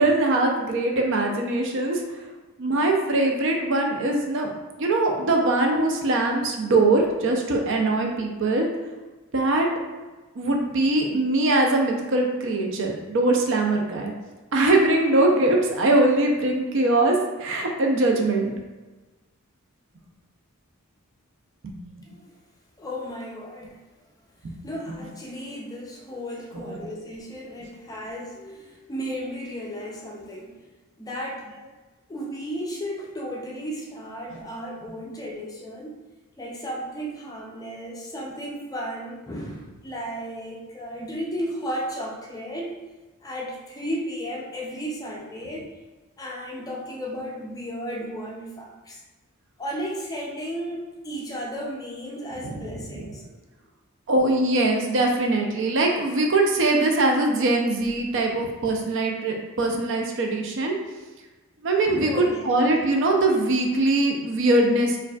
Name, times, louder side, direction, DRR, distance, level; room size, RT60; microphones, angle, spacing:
voice 1, 0.0-2.0 2.6-4.5 4.8-8.7 9.3-9.7 10.4-14.1 14.5-18.5 21.6-21.8 24.4-24.5 26.5-26.8 52.4-52.6 54.1-60.7 61.6-65.0, right 2 dB, 60° right, 1 dB, 0.5 m, -22 dB
voice 2, 22.1-22.4 22.8-23.8 24.6-30.6 31.0-31.5 32.1-36.0 36.4-42.7 43.2-45.7 46.2-49.0 49.6-53.2 61.9-62.5, equal, 15° left, -2 dB, 0.4 m, -34 dB
4.6 x 2.5 x 2.3 m, 1.2 s
head